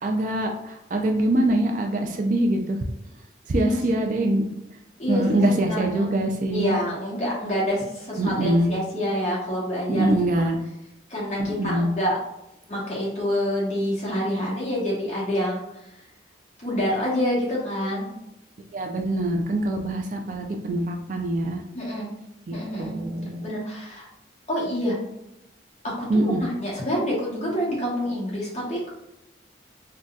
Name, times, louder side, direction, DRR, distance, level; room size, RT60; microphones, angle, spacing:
voice 1, 0.0-2.8 3.5-4.5 5.1-6.7 8.2-8.7 9.9-10.6 11.4-11.9 18.7-21.6 22.5-23.4 26.1-26.4, right 1 dB, 45° right, 3 dB, 0.3 m, -24 dB
voice 2, 3.5-4.0 5.0-6.2 6.5-10.1 11.1-12.2 12.7-15.9 16.6-18.1 21.7-22.1 22.5-23.0 23.4-24.1 24.5-25.0 25.8-28.9, equal, 40° left, -5 dB, 1.1 m, -27 dB
3.9 x 2.2 x 2.3 m, 0.86 s
head